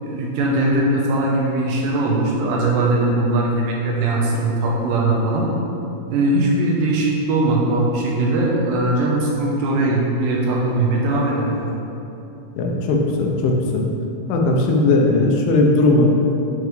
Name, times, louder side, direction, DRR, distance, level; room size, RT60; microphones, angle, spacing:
voice 1, 0.0-5.5 6.1-11.7, right 2 dB, 80° right, -3 dB, 2.8 m, -20 dB
voice 2, 12.6-13.8 14.3-16.1, left 2 dB, 90° left, 0 dB, 3.2 m, -17 dB
9.2 x 4.6 x 3.2 m, 2.8 s
omnidirectional pair, 5.3 m